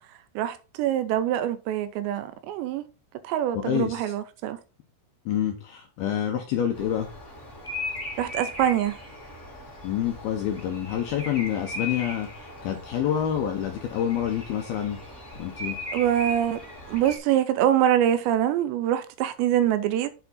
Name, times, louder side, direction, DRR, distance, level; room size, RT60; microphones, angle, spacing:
voice 1, 0.4-2.8 3.2-4.6 8.2-9.0 15.9-16.6 16.9-20.1, right 11 dB, 85° right, 2.6 m, -24 dB
voice 2, 3.5-4.0 5.3-7.1 9.8-15.0 15.4-15.8, left 10 dB, 80° left, 2.2 m, -27 dB
Bird vocalization bird call bird song, 6.7-17.2, left 1 dB, 25° left, 1.7 m, -38 dB
7.8 x 4.6 x 4.1 m
omnidirectional pair, 5.3 m